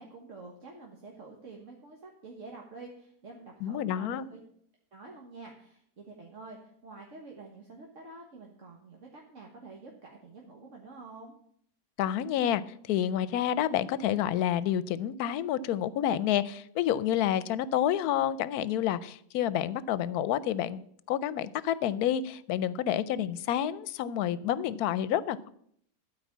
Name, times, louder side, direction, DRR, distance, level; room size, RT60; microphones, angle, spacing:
voice 1, 0.0-4.4 4.9-11.3, right 3 dB, 55° right, 0 dB, 1.6 m, -48 dB
voice 2, 3.6-4.3 12.0-12.6 12.9-25.5, left 10 dB, 85° left, 17 dB, 1.1 m, -29 dB
12.0 x 4.7 x 7.3 m, 0.66 s
omnidirectional pair, 1.6 m